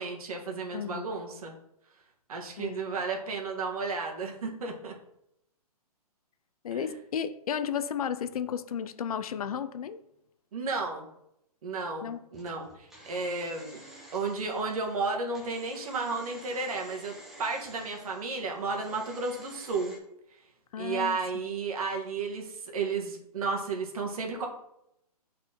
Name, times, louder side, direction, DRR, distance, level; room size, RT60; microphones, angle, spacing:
voice 1, 0.0-1.5 2.3-4.9 6.7-6.9 10.5-11.1 11.6-13.8 14.1-19.9 20.8-24.5, right 4 dB, 65° right, 1.4 m, -33 dB
voice 2, 0.7-1.1 2.6-2.8 6.6-10.0 12.0-12.2 20.7-21.2, left 8 dB, 65° left, 0.5 m, -33 dB
sound 1, 12.3-20.0, right 1 dB, ahead, 0.7 m, -51 dB
8.8 x 4.1 x 2.9 m
hypercardioid pair, 160°, 20 cm